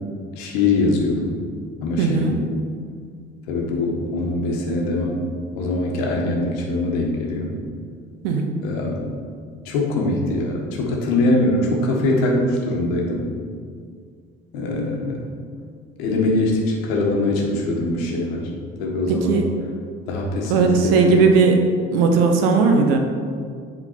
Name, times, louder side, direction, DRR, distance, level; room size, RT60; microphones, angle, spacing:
voice 1, 0.3-1.4 1.8-2.3 3.5-5.2 5.6-7.5 8.6-9.1 9.6-13.3 14.5-15.3 16.0-18.5 18.8-19.4 20.1-21.2, left 2 dB, 65° left, 0 dB, 1.2 m, -22 dB
voice 2, 2.0-2.4 8.2-8.5 19.1-19.4 20.5-21.6 21.9-23.0, right 4 dB, 65° right, 4 dB, 0.8 m, -17 dB
7.8 x 3.7 x 4.4 m, 2.1 s
figure-of-eight pair, 55°, 32 cm